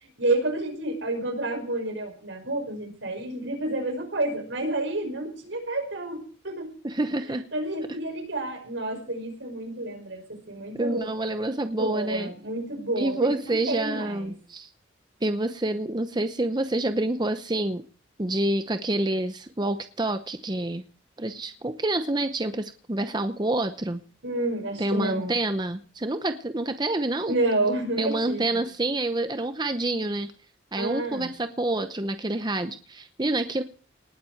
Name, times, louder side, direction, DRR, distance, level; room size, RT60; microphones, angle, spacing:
voice 1, 0.0-6.7 7.5-11.1 11.8-14.3 24.2-25.4 27.3-28.6 30.8-31.3, right 2 dB, 80° right, 5 dB, 5.5 m, -29 dB
voice 2, 6.8-7.4 10.7-12.3 13.0-14.7 15.2-17.8 18.2-20.8 21.2-24.0 24.8-27.4 28.0-30.3 30.7-33.6, right 2 dB, 20° right, 9 dB, 0.8 m, -27 dB
19.5 x 7.6 x 7.9 m, 0.40 s
head